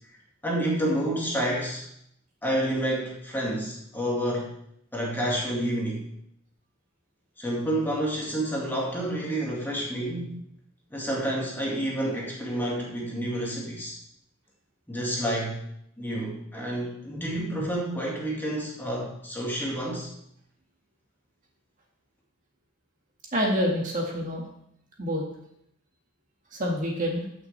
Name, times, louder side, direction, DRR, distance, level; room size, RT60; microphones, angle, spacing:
voice 1, 0.4-1.8 2.4-4.5 4.9-6.0 7.4-10.4 10.9-13.9 14.9-15.6 16.0-20.1, right 1 dB, 10° left, -4 dB, 2.0 m, -29 dB
voice 2, 23.3-24.4 25.0-25.2 26.5-27.3, equal, 40° right, -2 dB, 1.9 m, -27 dB
14.0 x 6.1 x 3.4 m, 0.73 s
head